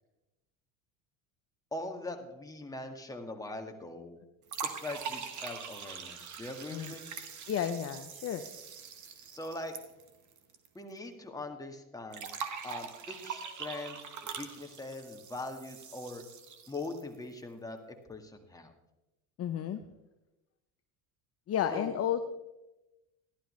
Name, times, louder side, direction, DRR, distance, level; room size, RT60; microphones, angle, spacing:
voice 1, 1.7-4.2 4.6-7.0 9.3-9.7 10.8-12.3 12.6-14.0 14.4-16.2 16.7-18.7 21.7-21.9, left 2 dB, 10° left, 3 dB, 1.6 m, -41 dB
sound 1, 4.5-10.7 10.9-11.0 12.1-17.2, right 6 dB, 45° right, 1.4 m, -43 dB
voice 2, 7.5-8.4 19.4-19.8 21.5-22.2, left 9 dB, 35° left, 9 dB, 0.6 m, -32 dB
14.5 x 11.0 x 3.1 m, 1.0 s
supercardioid pair, 90°, 40 cm